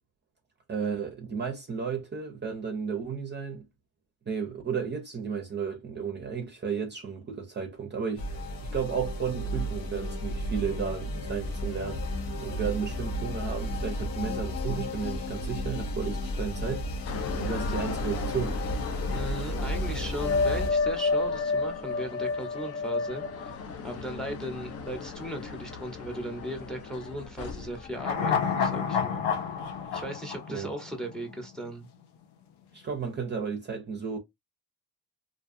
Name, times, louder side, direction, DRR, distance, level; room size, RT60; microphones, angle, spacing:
voice 1, 0.7-3.6 4.3-16.9 17.3-18.6 30.5-30.7 32.7-34.2, right 6 dB, 30° right, 0.6 m, -33 dB
sound 1, 8.2-20.7, left 1 dB, 60° left, 0.9 m, -33 dB
sound 2, 17.1-29.3 29.7-30.1, left 4 dB, 40° left, 0.5 m, -33 dB
voice 2, 19.1-23.6 23.8-29.3 29.9-31.9, right 1 dB, ahead, 0.9 m, -37 dB
sound 3, 27.9-31.3 31.6-31.7, left 7 dB, 90° left, 0.7 m, -29 dB
2.6 x 2.2 x 2.6 m
cardioid pair, 90°, 39 cm